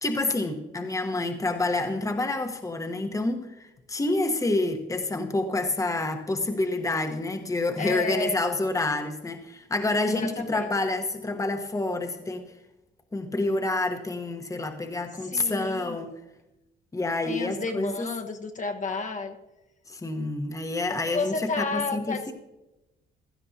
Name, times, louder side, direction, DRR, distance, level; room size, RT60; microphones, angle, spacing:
voice 1, 0.0-3.5 3.9-12.5 13.1-16.1 16.9-18.1 19.9-22.2, left 2 dB, 15° left, 5 dB, 1.1 m, -28 dB
voice 2, 7.8-8.4 10.0-10.7 15.2-16.0 17.2-19.4 20.9-22.3, left 3 dB, 40° left, 5 dB, 1.1 m, -32 dB
16.0 x 12.0 x 2.8 m, 0.97 s
cardioid pair, 90°, 20 cm